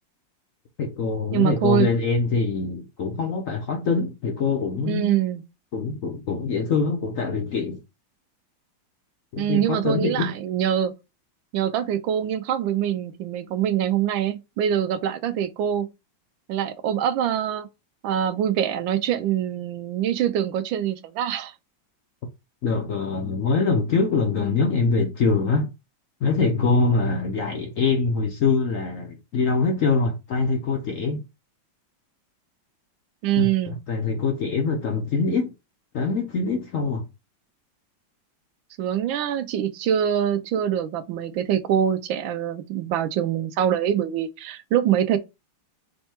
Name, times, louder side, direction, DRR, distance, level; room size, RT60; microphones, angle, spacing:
voice 1, 0.8-5.2 5.7-7.8 9.3-10.3 22.6-25.7 26.2-31.2 33.4-35.5 35.9-37.1, left 4 dB, 60° left, 0.8 m, -24 dB
voice 2, 1.3-1.9 4.8-5.4 9.4-10.9 11.5-15.9 16.5-17.7 18.0-21.5 33.2-33.8 38.8-45.2, right 10 dB, 85° right, 1.4 m, -24 dB
5.3 x 2.3 x 4.3 m
omnidirectional pair, 2.1 m